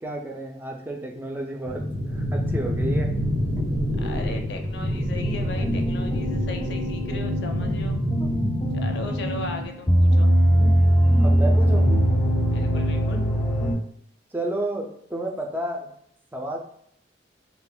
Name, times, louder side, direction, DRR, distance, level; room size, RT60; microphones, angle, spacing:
voice 1, 0.0-3.1 3.6-3.8 8.2-8.4 11.2-11.9 14.3-15.9 16.3-16.6, right 1 dB, 10° right, 1 dB, 0.3 m, -31 dB
sound 1, 1.7-9.7, equal, 90° right, 1.1 m, -27 dB
voice 2, 4.0-8.0 8.8-10.3 12.5-13.2, left 2 dB, 65° left, 4 dB, 0.4 m, -37 dB
sound 2, 5.2-13.7, equal, 20° left, 0.6 m, -22 dB
sound 3, 7.4-12.7, right 1 dB, 70° right, 0.7 m, -43 dB
2.2 x 2.1 x 3.7 m, 0.68 s
head